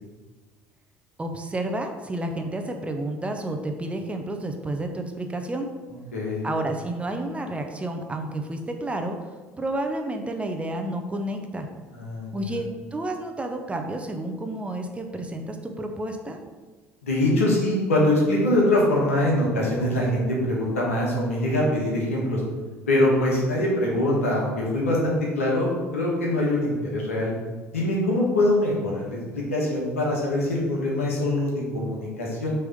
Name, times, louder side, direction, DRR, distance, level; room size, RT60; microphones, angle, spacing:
voice 1, 1.2-5.7 6.4-9.2 9.6-11.7 12.3-16.4, right 1 dB, 15° right, 4 dB, 0.8 m, -30 dB
voice 2, 6.1-6.4 11.9-12.6 17.0-22.4 22.9-27.3 27.7-32.5, left 1 dB, 80° left, -3 dB, 1.5 m, -23 dB
6.2 x 3.5 x 5.2 m, 1.3 s
figure-of-eight pair, 60°, 7 cm